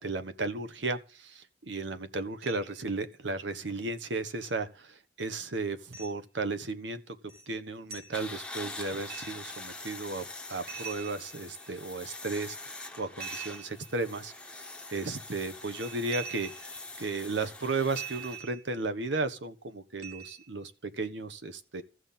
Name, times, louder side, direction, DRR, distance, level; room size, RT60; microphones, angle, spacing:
voice 1, 0.0-7.2 7.5-16.7 17.0-21.8, right 3 dB, 75° right, 1.2 m, -35 dB
sound 1, 2.4-2.8 4.4-4.5 5.9-6.2 7.3-7.5 7.9-8.2 9.1-9.5 10.7-11.7 13.2-14.0 15.6-16.9 18.0-18.8 20.0-20.6, right 7 dB, 60° right, 3.3 m, -43 dB
sound 2, 8.1-18.4, left 2 dB, 5° left, 1.1 m, -44 dB
15.0 x 6.3 x 7.3 m
head